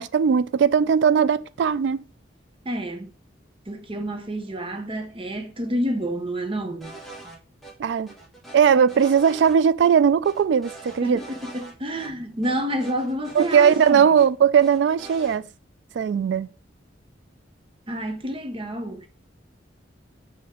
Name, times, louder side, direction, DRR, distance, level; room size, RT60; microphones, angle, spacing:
voice 1, 0.0-2.0 7.8-8.1 8.5-11.2 13.3-15.4 15.9-16.5, right 7 dB, 70° right, 0.3 m, -19 dB
voice 2, 2.6-3.1 3.7-6.9 11.0-14.1 17.9-19.1, equal, 30° right, 0.8 m, -29 dB
sound 1, 6.8-7.4 7.6-7.7 8.1-9.6 9.8-9.9 10.2-11.7 12.0-12.1 12.4-14.3 14.6-15.4, right 2 dB, ahead, 1.5 m, -42 dB
6.6 x 4.1 x 3.7 m
head